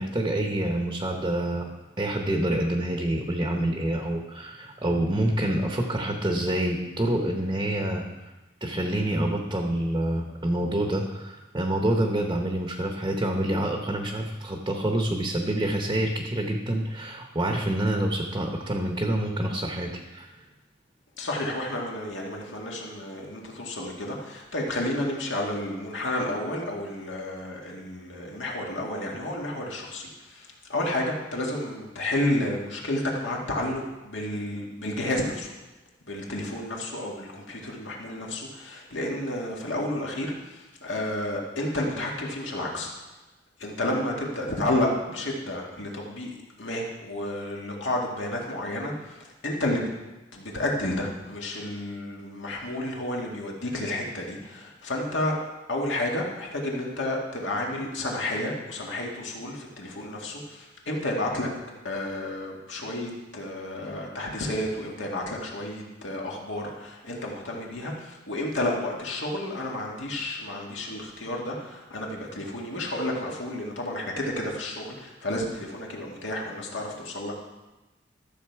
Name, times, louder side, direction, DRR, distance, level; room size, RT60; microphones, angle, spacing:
voice 1, 0.0-1.7 2.0-8.0 8.6-20.3, right 1 dB, 20° right, 2 dB, 1.0 m, -27 dB
voice 2, 21.2-35.5 36.1-42.9 43.6-48.9 49.4-49.9 50.3-55.3 55.7-61.5 61.8-77.4, left 1 dB, 70° left, -1 dB, 2.0 m, -31 dB
13.0 x 7.1 x 4.7 m, 1.1 s
head